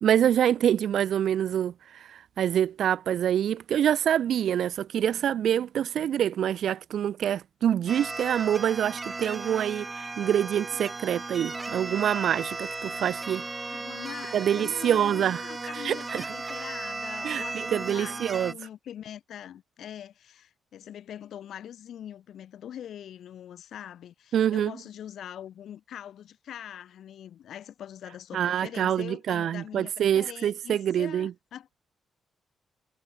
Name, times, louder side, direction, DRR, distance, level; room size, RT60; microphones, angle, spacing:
voice 1, 0.0-1.7 2.1-13.4 14.3-15.4 15.8-16.2 17.2-18.5 24.3-24.7 28.3-31.3, right 10 dB, 70° right, 0.5 m, -26 dB
sound 1, 7.9-18.5, right 3 dB, 20° right, 4.2 m, -36 dB
voice 2, 13.7-31.8, left 10 dB, 75° left, 5.3 m, -43 dB
cardioid pair, 130°, 0 cm